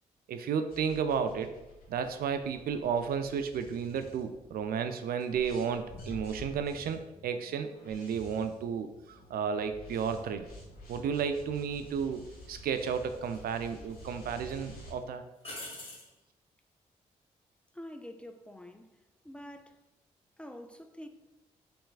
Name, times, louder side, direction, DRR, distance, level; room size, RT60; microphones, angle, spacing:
voice 1, 0.3-1.5 1.9-10.5 10.9-12.2 12.5-15.2, right 6 dB, 65° right, 0.4 m, -33 dB
sound 1, 0.7-4.8 5.2-14.9, left 1 dB, 65° left, 1.3 m, -50 dB
sound 2, 12.1-12.2 13.3-14.0 14.4-14.5 15.4-16.1 19.2-19.6, left 1 dB, 35° left, 1.5 m, -44 dB
voice 2, 17.7-18.9 19.2-19.8 20.4-21.1, left 1 dB, 5° left, 0.4 m, -46 dB
5.8 x 3.5 x 2.3 m
hypercardioid pair, 40°, 17 cm